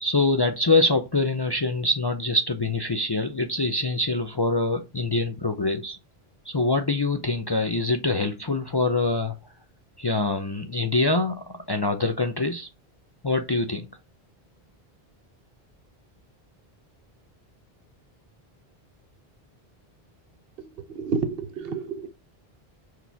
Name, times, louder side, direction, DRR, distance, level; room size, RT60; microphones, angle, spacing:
voice 1, 0.0-6.0 6.4-9.4 10.0-12.7 13.2-13.9, left 2 dB, 35° left, 0.4 m, -24 dB
voice 2, 20.6-22.1, right 5 dB, 70° right, 0.9 m, -30 dB
5.8 x 4.8 x 3.4 m
omnidirectional pair, 1.0 m